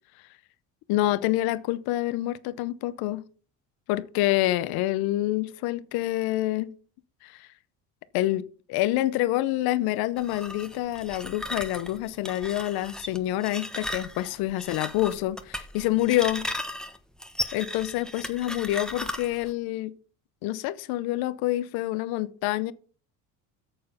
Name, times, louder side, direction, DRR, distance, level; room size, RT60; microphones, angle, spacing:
voice 1, 0.9-3.2 3.9-6.7 7.2-7.4 8.1-8.4 8.7-16.5 17.5-19.9 20.4-22.7, left 15 dB, 75° left, 0.8 m, -27 dB
sound 1, 10.2-19.5, left 1 dB, ahead, 1.0 m, -36 dB
8.9 x 6.9 x 5.6 m
supercardioid pair, 100°, 37 cm